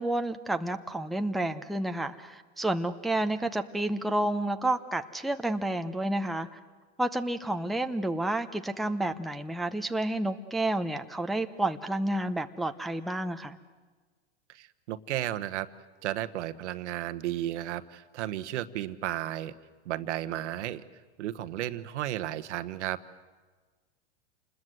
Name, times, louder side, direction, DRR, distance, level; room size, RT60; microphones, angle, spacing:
voice 1, 0.0-6.6 7.0-13.6, right 1 dB, ahead, 6 dB, 0.7 m, -30 dB
voice 2, 14.5-15.7 16.0-19.5 19.8-20.8 21.2-23.0, right 13 dB, 75° right, 12 dB, 1.2 m, -33 dB
27.5 x 21.0 x 7.8 m, 1.4 s
hypercardioid pair, 120°, 35 cm